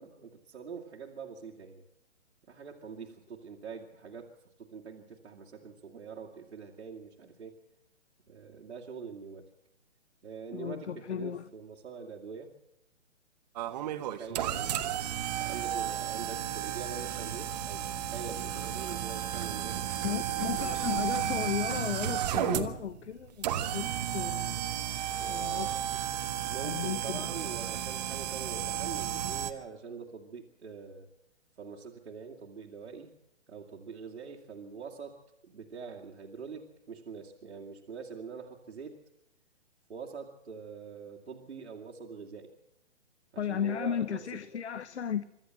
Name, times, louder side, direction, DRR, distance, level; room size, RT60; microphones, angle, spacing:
voice 1, 0.0-1.8 2.5-4.3 4.6-7.6 8.3-9.5 10.2-12.5 13.7-20.8 25.1-25.8 26.4-31.1 31.6-33.1 33.5-35.2 35.4-39.0 39.9-42.5 43.3-44.3, right 5 dB, 70° right, 2.7 m, -44 dB
voice 2, 10.5-11.4 20.0-23.5 23.7-24.6 25.3-25.9 26.6-27.3 43.4-45.2, left 8 dB, 65° left, 1.0 m, -34 dB
sound 1, 13.6-29.5, right 11 dB, 35° right, 1.4 m, -33 dB
25.5 x 13.0 x 7.7 m
hypercardioid pair, 145°, 36 cm